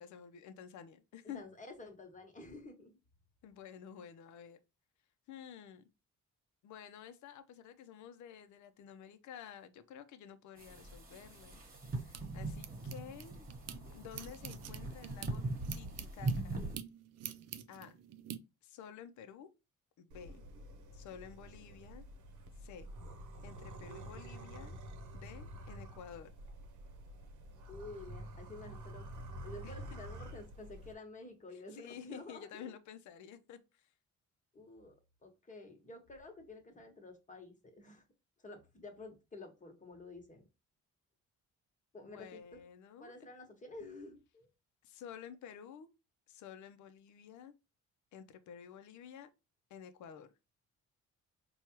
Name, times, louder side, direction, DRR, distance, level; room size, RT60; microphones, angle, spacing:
voice 1, 0.0-1.4 3.4-4.6 5.3-5.9 6.6-13.3 13.9-15.4 15.7-16.6 17.7-18.0 18.6-19.5 20.0-20.4 20.9-22.0 22.6-22.9 23.4-24.8 25.1-26.3 29.6-29.7 31.7-33.6 42.0-43.1 44.8-45.9 46.3-47.5 48.1-49.3 49.7-50.3, left 8 dB, 75° left, 0.6 m, -51 dB
voice 2, 1.3-3.0 12.7-12.8 13.3-13.5 27.7-29.1 29.4-32.7 34.5-34.9 35.2-38.0 38.4-40.5 41.9-42.6 43.0-44.5, left 2 dB, 25° left, 1.1 m, -51 dB
sound 1, 10.6-16.8, right 2 dB, 30° right, 1.2 m, -41 dB
sound 2, 11.5-13.8 14.1-18.4, right 10 dB, 60° right, 0.5 m, -48 dB
sound 3, 20.1-30.9, right 1 dB, 75° right, 0.8 m, -49 dB
4.4 x 2.3 x 3.0 m
cardioid pair, 90°, 30 cm